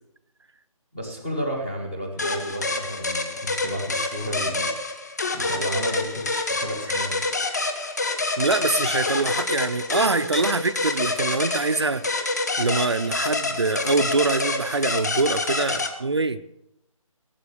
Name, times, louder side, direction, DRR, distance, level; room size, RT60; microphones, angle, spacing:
voice 1, 0.9-4.7 5.3-7.2 15.8-16.1, equal, 5° left, -1 dB, 0.8 m, -32 dB
sound 1, 2.2-15.9, left 3 dB, 30° left, 1.1 m, -27 dB
voice 2, 8.4-12.2 12.6-16.4, right 3 dB, 50° right, 9 dB, 0.6 m, -24 dB
17.0 x 7.7 x 8.5 m, 0.80 s
figure-of-eight pair, 180°, 18 cm